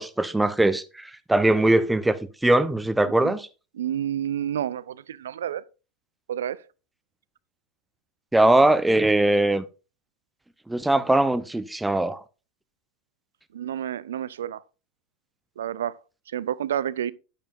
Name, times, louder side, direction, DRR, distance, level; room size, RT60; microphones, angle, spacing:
voice 1, 0.0-2.2 2.4-3.5 8.3-9.6 10.7-12.2, right 1 dB, 5° right, 0.8 m, -21 dB
voice 2, 3.8-5.6 6.3-6.6 13.5-14.6 15.6-16.0 16.3-17.1, right 10 dB, 75° right, 0.4 m, -29 dB
10.0 x 8.9 x 2.6 m
hypercardioid pair, 90°, 0 cm